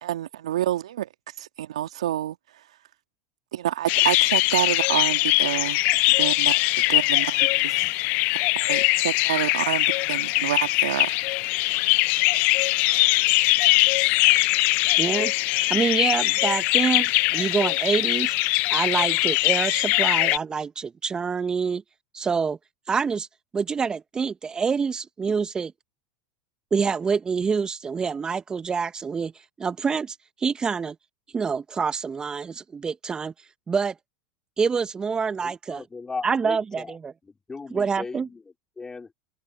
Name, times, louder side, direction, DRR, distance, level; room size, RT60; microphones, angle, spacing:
voice 1, 0.0-1.1 1.4-2.4 3.5-5.8 6.2-7.9 8.3-11.5, right 12 dB, 75° right, 2.4 m, -28 dB
sound 1, 3.9-20.4, left 24 dB, 55° left, 0.4 m, -22 dB
voice 2, 15.0-15.3 15.7-18.3 18.7-21.8 22.1-22.6 22.9-23.3 23.5-25.7 26.7-29.3 29.6-30.9 31.3-33.3 33.7-33.9 34.6-35.8 36.2-37.1 37.7-38.3, right 5 dB, 25° right, 1.1 m, -26 dB
voice 3, 35.4-37.0 37.2-38.4 38.8-39.1, left 4 dB, 15° left, 3.7 m, -37 dB
hypercardioid pair, 85°, 3 cm